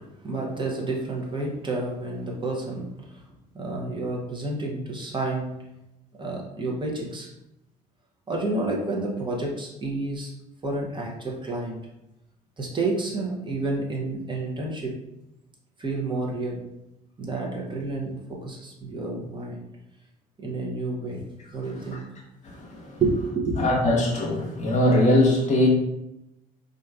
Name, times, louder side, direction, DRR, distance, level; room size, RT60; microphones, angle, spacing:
voice 1, 0.2-3.2 3.5-5.5 6.2-7.3 8.3-10.3 10.6-11.8 12.6-14.9 15.8-16.6 17.2-19.6 20.4-21.2 21.5-22.0 23.0-23.6, right 2 dB, 25° right, -2 dB, 0.9 m, -29 dB
voice 2, 21.6-22.0 22.4-23.0 23.6-25.7, left 1 dB, 40° left, -1 dB, 1.0 m, -22 dB
4.3 x 2.5 x 2.4 m, 0.89 s
figure-of-eight pair, 55°, 19 cm